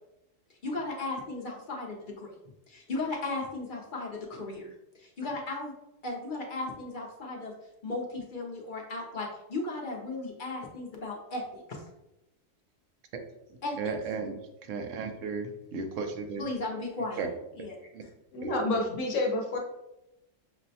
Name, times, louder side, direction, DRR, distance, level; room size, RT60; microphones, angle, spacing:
voice 1, 0.6-2.4 2.7-5.7 6.0-7.5 7.8-11.8 13.6-13.9 16.4-17.3 17.5-18.1, left 2 dB, 50° left, -1 dB, 0.7 m, -36 dB
voice 2, 13.8-14.3 14.7-16.4 17.2-17.3 17.6-17.7 17.9-18.0 18.4-18.5, right 4 dB, 80° right, 6 dB, 0.9 m, -34 dB
voice 3, 18.3-19.6, left 2 dB, 75° left, 1 dB, 1.0 m, -29 dB
6.1 x 2.1 x 2.7 m, 0.92 s
omnidirectional pair, 1.3 m